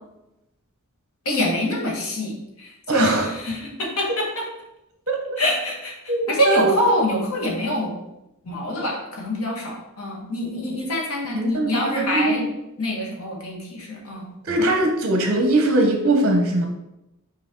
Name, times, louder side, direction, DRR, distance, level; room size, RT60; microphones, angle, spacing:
voice 1, 1.2-4.4 5.4-5.9 6.3-7.9 8.5-12.4 12.8-14.3, left 1 dB, 90° left, -1 dB, 1.7 m, -25 dB
voice 2, 2.9-3.3 5.1-5.4 6.1-6.9 11.2-12.4 14.4-16.7, right 2 dB, 50° right, 3 dB, 0.7 m, -21 dB
5.6 x 4.5 x 3.8 m, 0.91 s
head